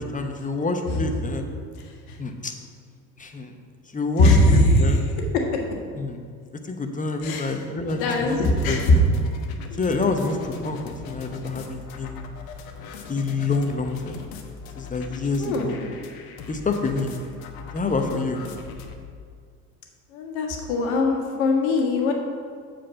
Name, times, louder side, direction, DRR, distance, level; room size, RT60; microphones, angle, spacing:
voice 1, 0.0-1.5 2.2-2.5 3.2-3.5 3.9-5.0 6.0-6.2 6.6-8.4 8.7-9.0 9.7-12.3 13.1-14.2 14.8-15.8 16.5-17.2 17.7-18.4, left 3 dB, 20° left, 5 dB, 1.0 m, -27 dB
voice 2, 4.2-4.9 5.3-5.6 7.2-7.5 8.0-9.0 15.4-15.9 20.1-22.1, left 2 dB, 70° left, 2 dB, 1.5 m, -20 dB
sound 1, 7.9-18.9, left 5 dB, 55° left, 1.0 m, -40 dB
7.4 x 4.5 x 6.9 m, 2.1 s
hypercardioid pair, 70°, 43 cm